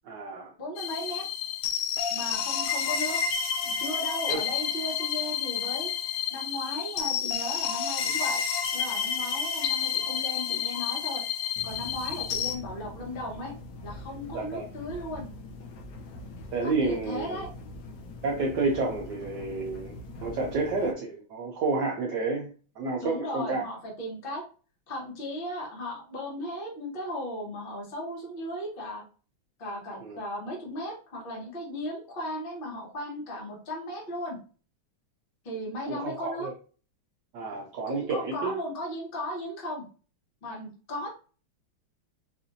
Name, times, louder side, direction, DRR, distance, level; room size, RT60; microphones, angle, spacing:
voice 1, 0.1-0.5 4.3-4.4 14.3-14.6 16.5-17.4 18.2-22.5 22.8-23.6 30.0-30.2 35.9-36.5 37.3-38.6, right 3 dB, 70° right, -1 dB, 1.1 m, -30 dB
voice 2, 0.6-1.2 2.1-3.2 3.6-5.9 6.3-8.4 8.7-11.2 11.6-13.5 13.8-15.3 16.6-17.5 23.0-24.4 24.9-29.0 29.6-34.4 35.4-36.5 37.9-39.8 40.4-41.1, left 1 dB, 30° left, -2 dB, 1.2 m, -36 dB
sound 1, 0.8-12.6, left 8 dB, 80° left, 1.5 m, -30 dB
sound 2, 11.6-20.9, left 2 dB, 65° left, 1.1 m, -43 dB
4.9 x 2.6 x 2.6 m, 0.38 s
omnidirectional pair, 2.3 m